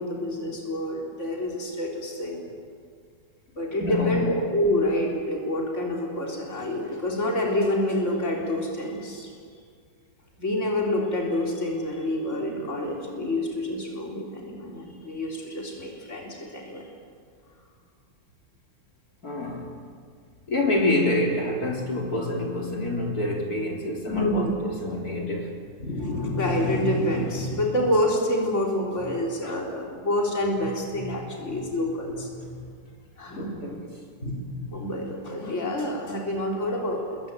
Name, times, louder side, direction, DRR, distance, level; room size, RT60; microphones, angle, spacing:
voice 1, 0.0-2.4 3.5-9.3 10.4-16.9 24.1-24.5 25.8-32.6 33.2-33.5 34.2-37.2, left 1 dB, 45° left, -1 dB, 4.3 m, -27 dB
voice 2, 3.8-4.3 19.2-19.7 20.5-25.6 29.4-29.6 33.3-33.9, left 1 dB, 65° left, 0 dB, 4.3 m, -27 dB
27.5 x 22.5 x 9.3 m, 2.1 s
omnidirectional pair, 1.7 m